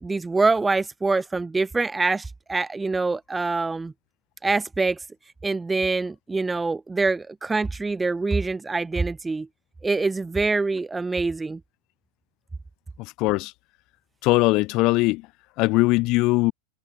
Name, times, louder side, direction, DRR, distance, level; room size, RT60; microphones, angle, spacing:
voice 1, 0.0-3.9 4.4-5.0 5.4-9.5 9.8-11.6, right 3 dB, 10° right, 0.4 m, -25 dB
voice 2, 13.2-13.5 14.2-15.2 15.6-16.5, left 22 dB, 50° left, 0.9 m, -20 dB
hypercardioid pair, 115°, 0 cm